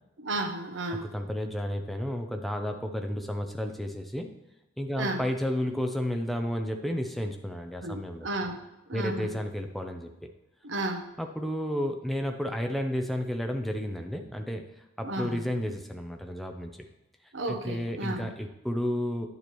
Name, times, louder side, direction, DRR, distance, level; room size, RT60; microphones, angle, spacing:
voice 1, 0.2-1.1 5.0-5.3 7.8-8.6 8.9-9.4 10.6-11.1 15.0-15.4 17.3-18.3, right 2 dB, 80° right, 6 dB, 0.9 m, -33 dB
voice 2, 0.9-4.3 4.8-8.3 8.9-10.1 11.2-14.6 15.0-16.7 17.5-19.3, equal, ahead, 4 dB, 0.6 m, -32 dB
9.8 x 6.9 x 3.0 m, 0.97 s
head